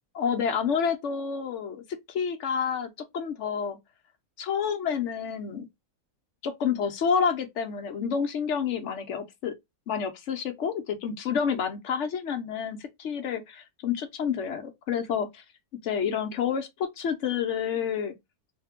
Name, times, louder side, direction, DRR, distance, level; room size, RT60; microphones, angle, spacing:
voice 1, 0.1-3.8 4.4-5.7 6.4-9.5 9.9-15.4 15.8-18.1, left 7 dB, 60° left, 1.0 m, -29 dB
3.2 x 2.1 x 3.6 m
omnidirectional pair, 1.6 m